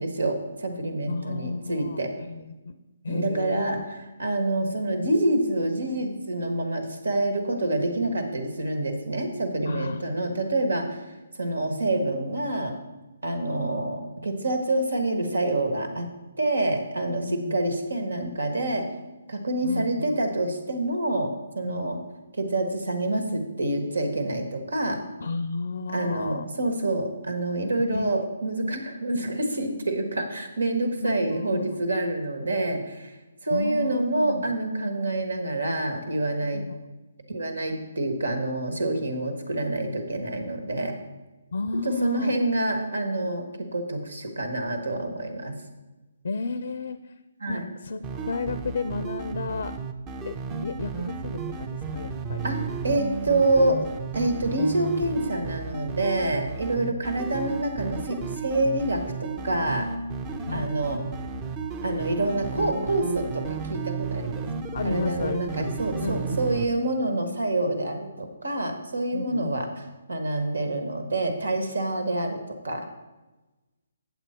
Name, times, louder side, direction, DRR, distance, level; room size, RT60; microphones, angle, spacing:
voice 1, 0.0-2.1 3.1-11.0 11.4-12.7 13.2-16.1 16.4-18.9 19.3-22.0 22.3-25.0 25.9-33.1 33.4-36.6 37.3-41.0 41.8-45.6 47.4-47.7 52.4-53.8 54.1-59.9 60.5-61.0 61.8-64.4 64.8-69.7 70.1-72.9, right 2 dB, 90° right, 6 dB, 1.6 m, -27 dB
voice 2, 1.1-2.7 3.0-3.8 9.7-10.1 17.2-17.6 19.6-20.2 21.6-21.9 25.2-26.5 27.9-28.3 31.0-31.8 33.5-34.5 36.4-36.8 41.5-42.3 46.2-47.1 47.5-49.8 50.2-52.5 56.8-56.9 60.5-60.8 64.7-66.5 69.1-69.5, left 3 dB, 70° left, 12 dB, 0.5 m, -33 dB
sound 1, 48.0-66.7, right 5 dB, 20° right, 0.6 m, -33 dB
8.0 x 7.9 x 4.4 m, 1.1 s
hypercardioid pair, 155°, 0 cm